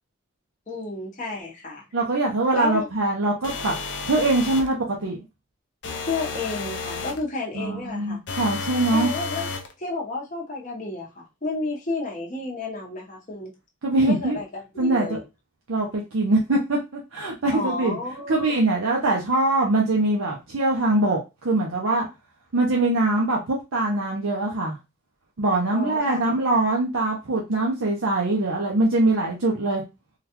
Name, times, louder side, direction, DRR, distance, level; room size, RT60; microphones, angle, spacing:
voice 1, 0.7-1.8 2.5-2.9 6.0-8.2 8.9-9.5 9.8-13.5 14.0-15.2 17.5-18.6 25.7-26.2, left 3 dB, 40° left, 0.9 m, -31 dB
voice 2, 1.9-3.7 4.1-5.2 7.5-9.1 13.8-14.4 14.8-15.2 15.7-18.0 18.3-22.1 22.5-24.8 25.4-29.8, right 2 dB, 90° right, 0.7 m, -23 dB
sound 1, 3.4-4.7 5.8-7.2 8.3-9.7, left 4 dB, 60° left, 0.6 m, -32 dB
3.8 x 2.3 x 2.9 m
head